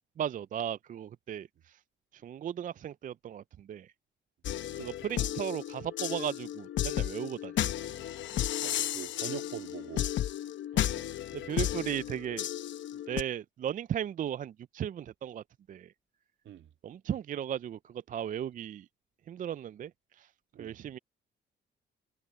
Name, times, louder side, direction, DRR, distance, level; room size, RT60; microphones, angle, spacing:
voice 1, 0.2-1.8 2.1-3.9 4.7-7.6 10.7-11.0 11.3-12.5 13.1-15.9 16.8-18.9 19.3-20.3 20.6-21.0, right 10 dB, 45° right, 0.4 m, -36 dB
sound 1, 4.4-13.2, left 12 dB, 70° left, 0.8 m, -33 dB
voice 2, 8.6-10.1 11.4-11.5 16.4-16.7 20.5-20.8, right 10 dB, 70° right, 2.1 m, -43 dB
cardioid pair, 90°, 20 cm